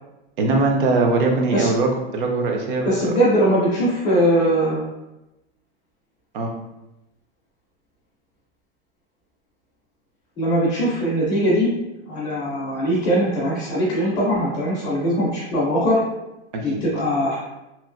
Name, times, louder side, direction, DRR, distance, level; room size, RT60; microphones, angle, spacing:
voice 1, 0.4-2.9 6.3-6.5 16.5-16.8, right 3 dB, 50° right, 2 dB, 0.6 m, -21 dB
voice 2, 2.8-4.8 10.4-11.7 12.1-16.0 16.6-17.4, equal, 15° left, -8 dB, 0.5 m, -21 dB
3.0 x 2.5 x 2.5 m, 0.93 s
supercardioid pair, 165°, 34 cm